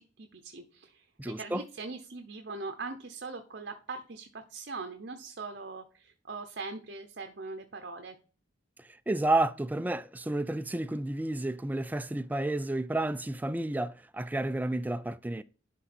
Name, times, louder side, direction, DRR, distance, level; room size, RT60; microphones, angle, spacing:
voice 1, 0.0-8.2, right 3 dB, 60° right, 0.8 m, -41 dB
voice 2, 1.2-1.6 9.1-15.4, right 2 dB, 10° right, 0.3 m, -31 dB
11.0 x 3.8 x 4.3 m
head